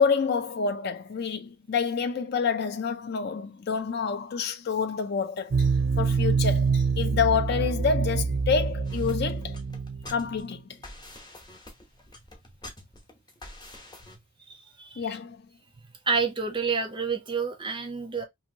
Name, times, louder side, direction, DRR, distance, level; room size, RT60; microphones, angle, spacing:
voice 1, 0.0-5.7 6.0-9.6 10.1-10.6 15.0-15.4, left 5 dB, 55° left, 0.4 m, -27 dB
sound 1, 5.5-10.5, right 5 dB, 75° right, 0.5 m, -26 dB
sound 2, 8.9-14.2, left 2 dB, 20° left, 0.9 m, -46 dB
voice 2, 14.5-15.0 16.1-18.2, right 5 dB, 25° right, 0.5 m, -29 dB
2.8 x 2.6 x 2.7 m
head